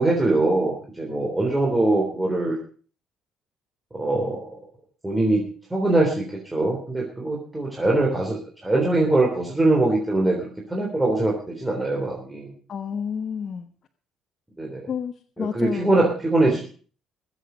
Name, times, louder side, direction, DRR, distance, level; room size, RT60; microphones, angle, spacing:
voice 1, 0.0-2.6 3.9-4.5 5.0-5.4 5.7-8.4 8.6-10.4 10.7-12.5 14.6-14.9 15.4-16.6, right 2 dB, 10° right, -2 dB, 3.5 m, -22 dB
voice 2, 12.7-13.7 14.9-16.1, left 7 dB, 45° left, 5 dB, 1.1 m, -30 dB
21.5 x 8.1 x 5.2 m, 0.42 s
cardioid pair, 125°, 0 cm